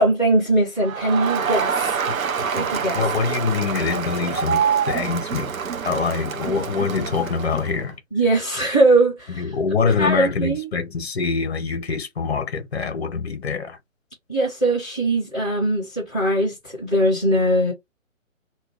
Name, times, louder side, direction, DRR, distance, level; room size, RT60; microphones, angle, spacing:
voice 1, 0.0-2.0 2.5-3.0 8.1-9.5 10.0-10.7 14.3-17.7, right 1 dB, 5° left, 0.6 m, -21 dB
Crowd, 0.8-7.8, right 7 dB, 85° right, 0.5 m, -26 dB
voice 2, 2.1-2.7 2.9-5.5 5.8-8.0 9.3-13.8, left 5 dB, 50° left, 0.8 m, -25 dB
2.2 x 2.1 x 3.3 m
figure-of-eight pair, 140°, 40 cm